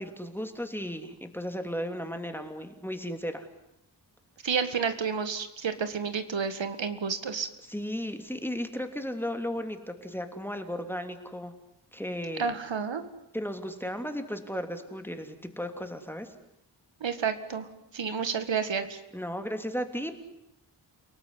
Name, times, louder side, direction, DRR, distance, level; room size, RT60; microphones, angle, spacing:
voice 1, 0.0-3.5 7.7-11.5 11.9-12.5 13.3-16.3 19.1-20.2, equal, 5° left, 6 dB, 3.0 m, -35 dB
voice 2, 4.4-7.5 12.4-13.0 17.0-17.7 17.9-19.0, right 6 dB, 90° right, 10 dB, 2.0 m, -30 dB
29.5 x 18.5 x 9.9 m, 0.82 s
wide cardioid pair, 90°, 44 cm